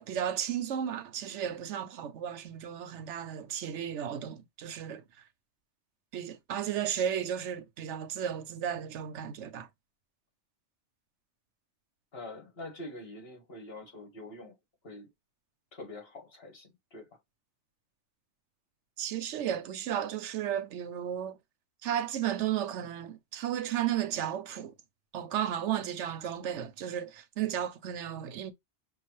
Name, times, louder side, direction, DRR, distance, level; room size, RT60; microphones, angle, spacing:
voice 1, 0.0-5.0 6.1-9.7 19.0-21.4 21.8-24.7 25.1-28.5, right 10 dB, 80° right, 0.9 m, -34 dB
voice 2, 12.1-14.6 14.8-15.1 15.7-17.2, left 2 dB, 55° left, 1.6 m, -45 dB
5.4 x 2.3 x 3.1 m
omnidirectional pair, 1.2 m